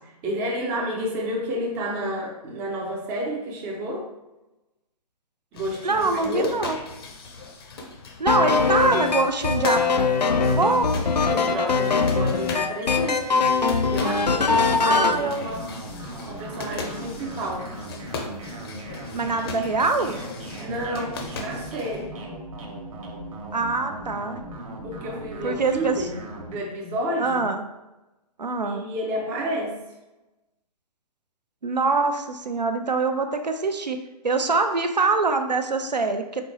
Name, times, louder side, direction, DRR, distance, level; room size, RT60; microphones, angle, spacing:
voice 1, 0.2-4.1 5.5-6.5 11.2-13.3 13.9-15.7 16.2-17.7 20.6-22.2 24.8-26.2 26.5-27.4 28.6-29.8, equal, 10° right, -1 dB, 0.4 m, -30 dB
sound 1, 5.5-22.1, left 3 dB, 35° left, 0.6 m, -39 dB
voice 2, 5.8-6.8 8.2-9.8 10.5-10.9 14.8-15.5 19.1-20.2 23.5-24.4 25.4-25.9 27.2-27.6 28.4-28.9 31.6-34.0 34.2-36.4, right 3 dB, 80° right, 6 dB, 0.6 m, -24 dB
sound 2, 8.3-15.2, left 4 dB, 80° left, 0.5 m, -22 dB
sound 3, 14.1-26.6, right 1 dB, 55° right, 1.1 m, -38 dB
4.3 x 3.7 x 3.1 m, 1.0 s
figure-of-eight pair, 130°, 21 cm